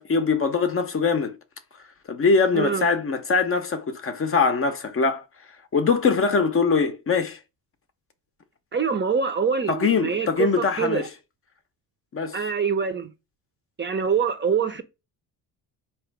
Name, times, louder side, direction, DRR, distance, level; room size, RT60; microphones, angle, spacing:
voice 1, 0.0-1.4 2.1-5.2 5.7-7.4 9.7-11.1 12.1-12.4, left 4 dB, 30° left, 0.6 m, -22 dB
voice 2, 2.5-2.9 8.7-11.1 12.3-13.1 13.8-14.8, right 6 dB, 25° right, 0.6 m, -25 dB
4.4 x 3.0 x 3.3 m
cardioid pair, 110°, 43 cm